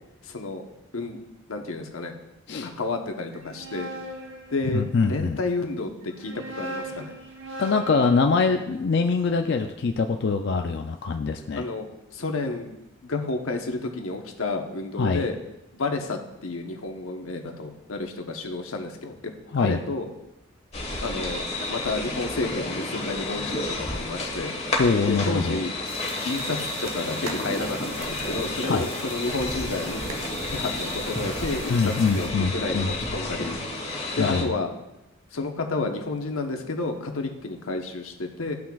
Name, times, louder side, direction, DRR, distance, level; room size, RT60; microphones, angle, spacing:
voice 1, 0.2-0.6 0.9-1.2 1.5-2.1 2.6-3.9 4.5-7.1 11.6-11.9 12.1-12.7 13.0-15.4 15.7-19.2 19.6-20.1 21.0-21.4 21.7-24.5 25.1-25.7 26.2-30.0 30.5-33.6 34.2-34.7 35.3-38.5, left 3 dB, 90° left, 4 dB, 1.0 m, -30 dB
sound 1, 3.3-5.2 6.0-10.2, right 1 dB, 65° right, 1.2 m, -40 dB
voice 2, 4.7-5.4 7.6-11.6 15.0-15.3 19.5-19.8 24.8-25.6 28.6-28.9 31.7-32.9 34.2-34.5, left 4 dB, 55° left, 5 dB, 0.4 m, -24 dB
sound 2, 20.7-34.4, left 2 dB, 30° left, 1.3 m, -31 dB
sound 3, 25.9-32.3, right 3 dB, 85° right, 1.1 m, -40 dB
13.0 x 5.9 x 2.3 m, 0.90 s
head